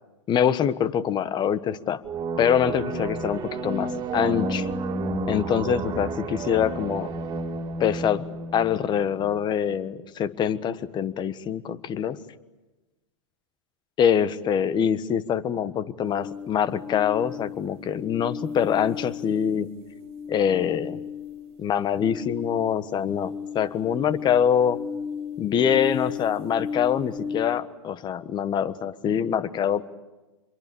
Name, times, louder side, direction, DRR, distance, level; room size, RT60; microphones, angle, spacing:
voice 1, 0.3-2.0 2.4-4.7 5.3-7.1 7.8-8.2 8.5-12.2 14.0-19.7 20.3-21.0 21.6-24.8 25.4-29.9, left 8 dB, 30° left, 15 dB, 1.4 m, -24 dB
sound 1, 2.0-9.4, right 2 dB, 25° right, 3.2 m, -31 dB
sound 2, 16.0-27.6, left 6 dB, 40° right, 2.1 m, -35 dB
27.5 x 22.5 x 8.7 m, 1.1 s
hypercardioid pair, 105°, 16 cm